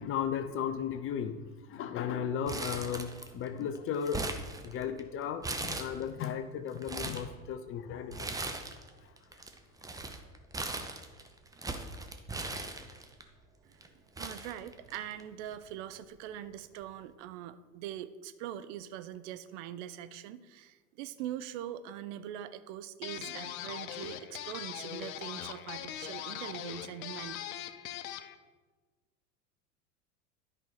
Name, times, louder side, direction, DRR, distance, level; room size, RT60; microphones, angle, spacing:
voice 1, 0.0-4.3 4.6-8.3, left 8 dB, 30° left, 10 dB, 0.5 m, -35 dB
Crumpling crinkling, 2.5-3.5 3.7-5.0 5.4-6.3 6.7-7.3 8.1-8.9 9.2-13.2 13.8-13.9 14.2-15.2 15.5-15.6 16.6-16.8, right 2 dB, 10° right, 0.7 m, -39 dB
voice 2, 13.7-27.4, right 11 dB, 50° right, 13 dB, 0.6 m, -42 dB
sound 1, 23.0-28.3, left 11 dB, 65° left, 0.8 m, -41 dB
10.5 x 5.4 x 4.8 m, 1.3 s
hypercardioid pair, 85°, 46 cm